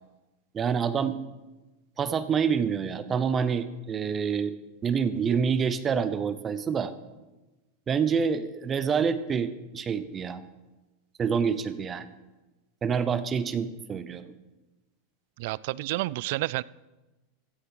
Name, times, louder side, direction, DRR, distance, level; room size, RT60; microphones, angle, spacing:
voice 1, 0.5-1.2 2.0-4.5 4.8-6.9 7.9-10.4 11.2-12.1 12.8-14.3, right 6 dB, 25° right, 13 dB, 0.7 m, -27 dB
voice 2, 15.4-16.6, right 18 dB, 65° right, 22 dB, 0.3 m, -30 dB
15.5 x 7.6 x 5.5 m, 1.1 s
supercardioid pair, 130°, 0 cm